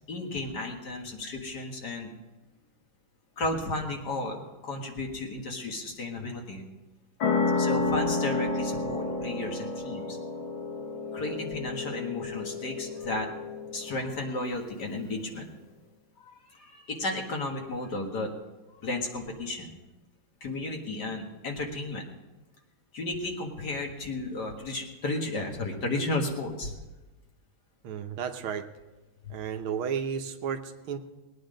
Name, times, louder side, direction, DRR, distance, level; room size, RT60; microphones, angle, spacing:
voice 1, 0.1-2.1 3.4-6.7 7.5-10.2 11.1-13.3 13.7-15.5 16.2-18.3 18.7-19.8 20.4-22.1 22.9-26.7 29.3-29.4, left 2 dB, 55° left, 1 dB, 2.2 m, -33 dB
sound 1, 7.2-14.4, left 3 dB, 70° left, 2.1 m, -31 dB
voice 2, 27.8-28.7 29.3-31.0, right 7 dB, 80° right, 6 dB, 1.8 m, -33 dB
20.0 x 9.5 x 5.2 m, 1.1 s
omnidirectional pair, 2.3 m